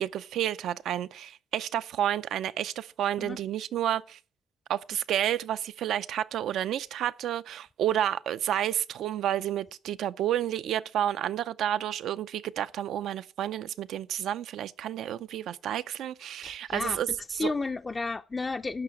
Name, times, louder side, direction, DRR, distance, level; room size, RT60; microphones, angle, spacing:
voice 1, 0.0-4.2 4.7-17.1 17.4-17.5, right 11 dB, 75° right, 0.5 m, -30 dB
voice 2, 16.4-17.0 17.3-18.8, left 3 dB, 25° left, 0.4 m, -32 dB
10.5 x 6.1 x 8.9 m
cardioid pair, 110°, 0 cm